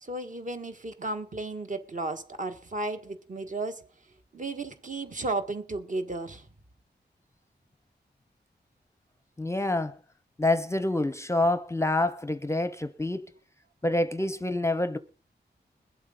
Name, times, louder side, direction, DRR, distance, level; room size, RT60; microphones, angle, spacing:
voice 1, 0.0-3.8 4.3-6.4, right 2 dB, 45° right, 1.5 m, -34 dB
voice 2, 9.4-10.0 10.4-13.3 13.8-15.0, left 2 dB, 15° left, 0.6 m, -27 dB
22.0 x 7.9 x 3.8 m
wide cardioid pair, 110°, 18 cm